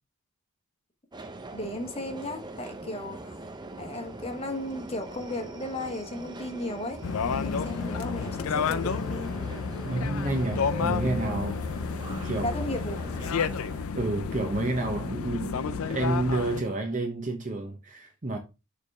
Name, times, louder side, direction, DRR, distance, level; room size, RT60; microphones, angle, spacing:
Subway metro underground, 1.1-13.9, right 2 dB, 20° right, 0.5 m, -42 dB
voice 1, 1.5-3.3 3.8-9.3 12.4-13.0, left 1 dB, 25° left, 1.1 m, -35 dB
sound 1, 7.0-16.6, left 5 dB, 70° left, 0.5 m, -31 dB
voice 2, 9.8-11.8 12.2-12.6 13.9-18.4, right 2 dB, 35° right, 0.9 m, -30 dB
6.6 x 3.4 x 4.8 m
head